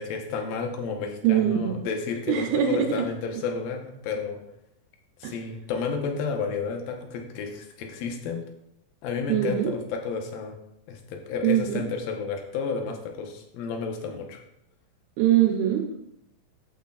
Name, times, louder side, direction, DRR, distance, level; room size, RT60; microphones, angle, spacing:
voice 1, 0.0-4.4 5.2-8.4 9.0-10.6 10.9-14.4, left 5 dB, 70° left, 3 dB, 2.7 m, -31 dB
voice 2, 1.2-1.8 2.3-3.1 5.2-5.3 9.3-9.7 11.4-11.9 15.2-16.0, right 11 dB, 75° right, 2 dB, 2.6 m, -23 dB
12.5 x 8.2 x 2.5 m, 0.80 s
omnidirectional pair, 4.7 m